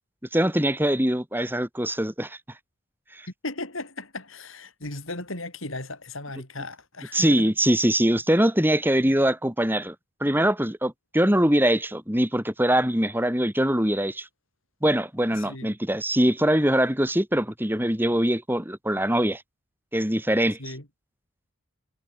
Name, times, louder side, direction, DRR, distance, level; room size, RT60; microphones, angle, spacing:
voice 1, 0.3-2.4 3.1-3.3 7.1-10.0 10.2-14.3 14.8-19.4 19.9-20.6, right 1 dB, 10° right, 3.7 m, -23 dB
voice 2, 3.4-7.5 15.3-15.7 20.6-20.9, left 2 dB, 65° left, 7.9 m, -36 dB
head